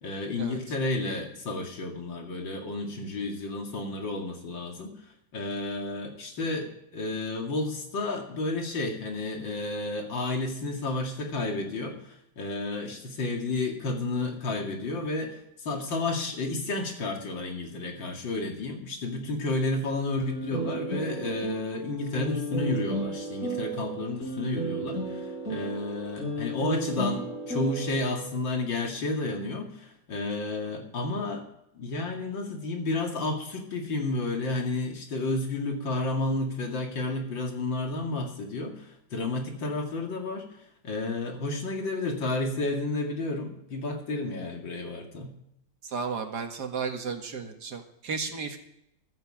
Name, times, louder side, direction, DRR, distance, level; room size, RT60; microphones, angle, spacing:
voice 1, 0.0-4.9 5.3-31.4 31.7-40.5 40.8-45.3, left 2 dB, 90° left, 2 dB, 3.0 m, -31 dB
sound 1, 20.2-28.3, right 2 dB, 45° left, 4.9 m, -33 dB
voice 2, 45.8-48.6, right 5 dB, 65° right, 4 dB, 2.2 m, -33 dB
14.5 x 12.5 x 4.9 m, 0.77 s
omnidirectional pair, 2.0 m